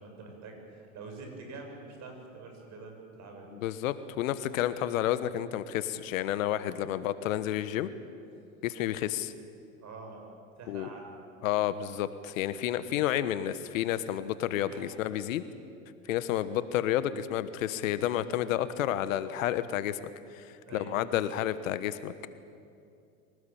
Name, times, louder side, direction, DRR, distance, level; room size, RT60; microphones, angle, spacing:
voice 1, 0.0-3.5 4.6-4.8 9.8-10.3 10.6-11.1 14.7-15.0 20.6-21.2, right 3 dB, 40° right, 3 dB, 7.1 m, -46 dB
voice 2, 3.6-7.9 8.6-9.3 10.7-10.9 11.4-15.4 16.1-20.0 20.3-22.3, left 12 dB, 70° left, 14 dB, 1.3 m, -30 dB
24.5 x 18.5 x 8.6 m, 2.5 s
hypercardioid pair, 100°, 42 cm